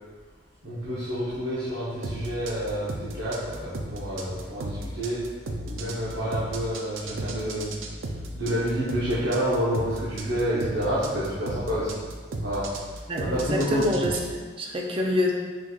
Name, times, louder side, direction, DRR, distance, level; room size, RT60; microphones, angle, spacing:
voice 1, 0.6-5.2 5.7-7.7 8.3-12.0 12.4-12.7 13.2-14.0, equal, 70° right, -10 dB, 1.0 m, -28 dB
sound 1, 2.0-14.3, right 2 dB, 90° right, 0.4 m, -35 dB
voice 2, 13.1-15.3, left 1 dB, 30° right, 0 dB, 0.5 m, -26 dB
5.8 x 3.0 x 2.4 m, 1.4 s
head